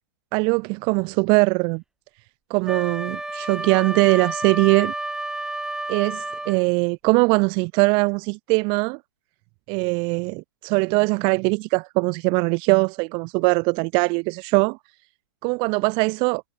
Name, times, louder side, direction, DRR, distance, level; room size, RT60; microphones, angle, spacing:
voice 1, 0.3-1.8 2.5-4.9 5.9-9.0 9.7-14.8 15.4-16.4, right 31 dB, 40° right, 2.8 m, -21 dB
Wind instrument woodwind instrument, 2.7-6.6, right 2 dB, 5° right, 6.9 m, -30 dB
hypercardioid pair, 115°, 13 cm